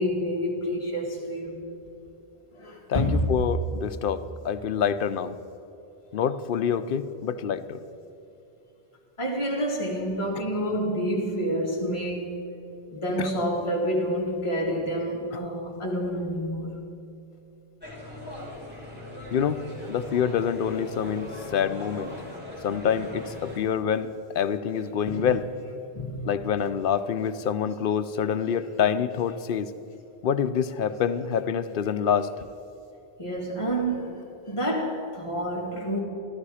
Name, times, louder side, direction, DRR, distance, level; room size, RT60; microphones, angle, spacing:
voice 1, 0.0-1.6 2.5-3.2 9.2-12.3 12.9-16.8 25.2-25.3 25.9-26.3 33.2-36.0, equal, 30° left, 1.8 m, -28 dB
voice 2, 2.9-5.4 6.1-7.8 13.2-13.3 19.3-19.6 19.9-22.1 22.6-25.5 26.2-29.7 30.2-32.3, left 8 dB, 65° left, 0.7 m, -26 dB
sound 1, 17.8-23.6, left 1 dB, 10° right, 3.1 m, -40 dB
14.0 x 13.0 x 4.9 m
omnidirectional pair, 1.1 m